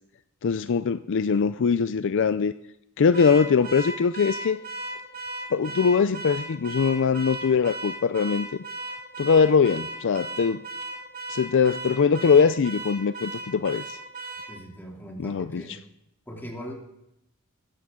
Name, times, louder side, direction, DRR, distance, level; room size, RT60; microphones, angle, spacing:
voice 1, 0.4-2.5 3.0-4.6 5.5-8.5 9.2-10.6 11.3-14.0 15.2-15.6, left 5 dB, 60° left, 13 dB, 0.4 m, -22 dB
Car / Alarm, 3.1-14.6, right 2 dB, 45° right, 2.6 m, -36 dB
voice 2, 14.5-15.7 16.3-16.7, equal, 10° left, -1 dB, 3.0 m, -39 dB
21.0 x 15.0 x 3.7 m, 0.82 s
head